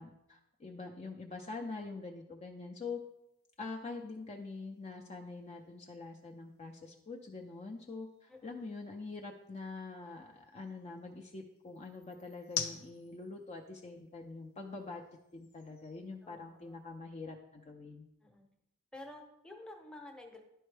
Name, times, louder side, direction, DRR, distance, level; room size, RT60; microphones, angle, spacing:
voice 1, 0.0-3.0 3.6-15.0 15.3-18.1, left 3 dB, 30° left, 1 dB, 0.5 m, -45 dB
sound 1, 2.8-17.0, left 7 dB, 65° left, 0.8 m, -50 dB
voice 2, 8.3-8.7 16.2-16.8 18.2-18.5 18.9-20.4, left 2 dB, 5° left, 2 dB, 0.8 m, -51 dB
10.5 x 4.4 x 3.3 m, 0.83 s
head